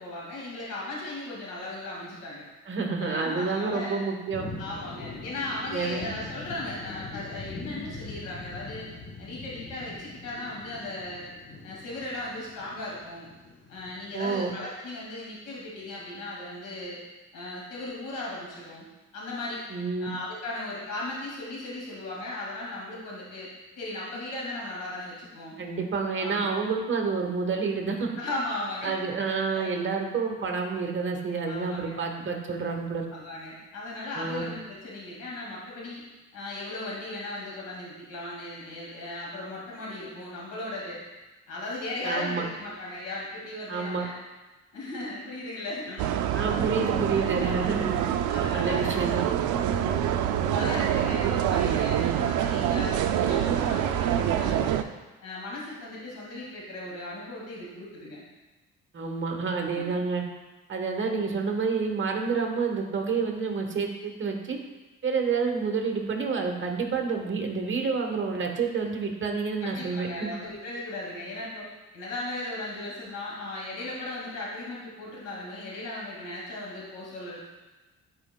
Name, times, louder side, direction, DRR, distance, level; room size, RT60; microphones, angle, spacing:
voice 1, 0.0-2.5 3.0-4.0 4.5-8.9 9.2-11.3 11.6-13.3 13.7-17.0 17.3-18.8 19.1-19.6 20.0-23.5 23.8-25.6 26.2-26.5 28.2-29.7 31.5-31.9 33.1-36.0 36.3-41.0 41.5-44.2 44.7-46.1 46.9-47.9 48.3-49.1 49.7-50.0 50.5-54.8 55.2-58.2 59.6-60.0 69.6-71.7 71.9-77.4, left 2 dB, 90° left, -4 dB, 2.1 m, -37 dB
voice 2, 2.7-4.5 5.7-6.1 14.1-14.5 19.7-20.1 25.6-28.1 28.8-33.0 34.1-34.5 42.0-42.4 43.7-44.1 46.3-47.9 48.5-49.2 58.9-60.2 60.7-64.6 65.0-70.3, right 4 dB, 40° right, 2 dB, 1.2 m, -29 dB
sound 1, 4.3-14.3, left 3 dB, 40° left, 1.0 m, -42 dB
sound 2, 46.0-54.8, right 10 dB, 80° right, 0.5 m, -26 dB
10.5 x 4.6 x 2.2 m, 1.1 s
cardioid pair, 90°, 30 cm